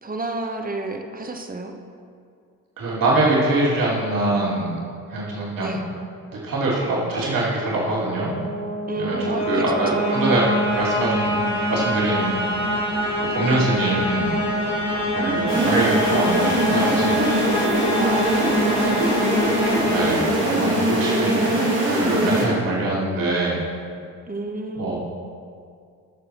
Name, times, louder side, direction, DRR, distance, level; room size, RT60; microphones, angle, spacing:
voice 1, 0.0-1.8 5.6-5.9 8.9-10.4 13.4-13.7 15.0-15.8 18.0-19.4 20.3-20.8 22.2-22.4 24.3-24.9, right 2 dB, 20° right, 4 dB, 1.1 m, -31 dB
voice 2, 2.8-4.8 5.1-5.8 6.3-8.3 9.0-9.2 9.5-12.4 13.3-14.3 15.1-17.2 19.8-23.6 24.8-25.0, right 2 dB, 50° right, -5 dB, 2.7 m, -24 dB
sound 1, 7.9-20.9, equal, 80° left, 2.9 m, -25 dB
sound 2, 15.5-22.4, right 1 dB, 80° right, 2.7 m, -21 dB
18.0 x 6.7 x 3.0 m, 2.3 s
figure-of-eight pair, 40°, 44 cm